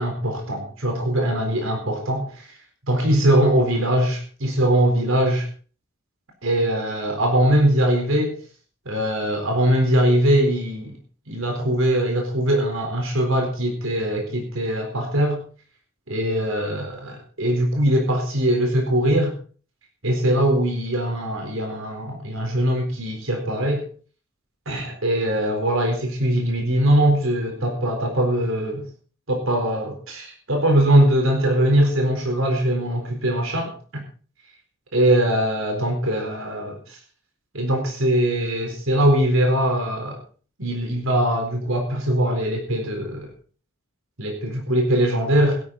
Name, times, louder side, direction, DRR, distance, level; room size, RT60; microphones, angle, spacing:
voice 1, 0.0-2.5 2.9-5.5 6.4-8.4 8.9-11.0 11.3-15.4 16.1-19.4 20.0-23.9 24.7-28.9 29.3-34.0 34.9-36.8 37.5-40.2 40.6-43.3 44.2-45.6, right 1 dB, 80° right, 3 dB, 4.2 m, -21 dB
16.5 x 12.5 x 4.1 m, 0.40 s
head